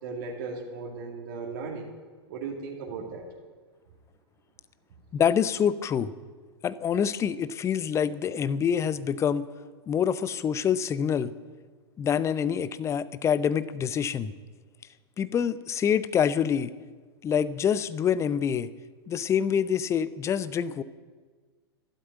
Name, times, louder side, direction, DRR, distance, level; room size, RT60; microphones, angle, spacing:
voice 1, 0.0-1.9 2.3-3.3, right 4 dB, 55° right, 1 dB, 2.4 m, -36 dB
voice 2, 5.1-6.1 6.6-9.5 9.9-11.3 12.0-14.3 15.2-16.7 17.2-18.7 19.1-20.8, left 8 dB, 20° left, 15 dB, 0.7 m, -26 dB
12.5 x 12.0 x 9.4 m, 1.5 s
figure-of-eight pair, 100°, 14 cm